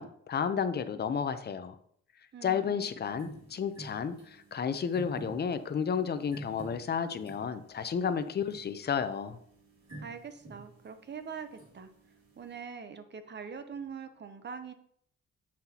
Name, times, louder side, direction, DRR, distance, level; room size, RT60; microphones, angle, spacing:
voice 1, 0.0-1.8 2.4-9.4, left 7 dB, 35° left, 10 dB, 0.6 m, -32 dB
voice 2, 2.3-2.9 10.0-11.9 12.4-14.7, right 6 dB, 35° right, 9 dB, 0.7 m, -43 dB
sound 1, 3.0-12.6, right 2 dB, 60° right, 2.6 m, -50 dB
7.4 x 5.9 x 2.9 m, 0.65 s
cardioid pair, 90°, 30 cm